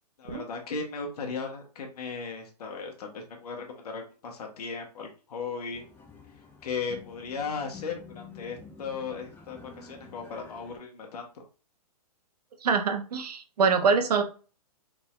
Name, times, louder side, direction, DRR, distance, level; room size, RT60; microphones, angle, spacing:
voice 1, 0.2-5.8 6.6-11.4, left 5 dB, 70° left, 2 dB, 1.1 m, -36 dB
sound 1, 5.7-10.8, left 5 dB, 10° left, 0.7 m, -49 dB
voice 2, 12.6-14.2, right 5 dB, 75° right, 6 dB, 0.9 m, -24 dB
4.1 x 3.5 x 2.4 m, 0.36 s
hypercardioid pair, 125°, 20 cm